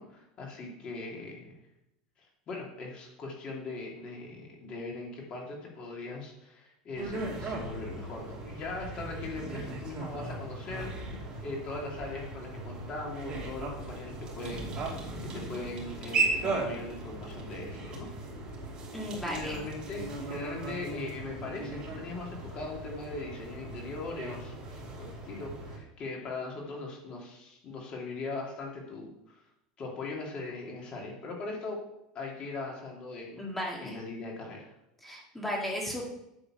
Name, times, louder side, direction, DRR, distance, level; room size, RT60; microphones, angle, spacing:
voice 1, 0.0-1.5 2.5-14.7 15.2-18.1 19.2-29.4 29.8-31.8 32.1-33.4 33.8-34.7, left 3 dB, 40° left, -1 dB, 2.8 m, -40 dB
sound 1, 7.0-25.8, right 3 dB, 35° right, 2.7 m, -37 dB
voice 2, 18.9-19.6 33.4-34.0 35.0-36.1, equal, 5° left, -3 dB, 2.0 m, -35 dB
8.9 x 4.0 x 6.2 m, 0.84 s
supercardioid pair, 115°, 3 cm